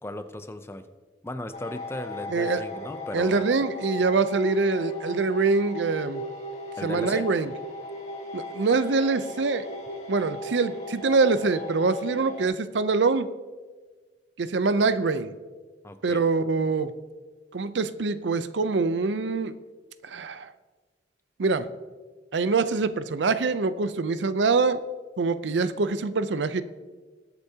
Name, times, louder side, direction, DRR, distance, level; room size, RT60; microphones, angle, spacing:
voice 1, 0.0-0.9 1.2-3.4 6.8-7.3 15.8-16.2, left 1 dB, 15° left, 9 dB, 0.5 m, -36 dB
sound 1, 1.5-12.5, left 1 dB, 40° left, 2.3 m, -37 dB
voice 2, 2.3-2.6 3.1-6.2 6.8-7.5 8.3-9.7 10.1-13.3 14.4-15.3 16.0-16.9 17.5-19.6 20.0-20.5 21.4-21.7 22.3-24.8 25.2-26.6, right 4 dB, 80° right, 13 dB, 0.6 m, -24 dB
20.5 x 8.2 x 2.8 m, 1.4 s
head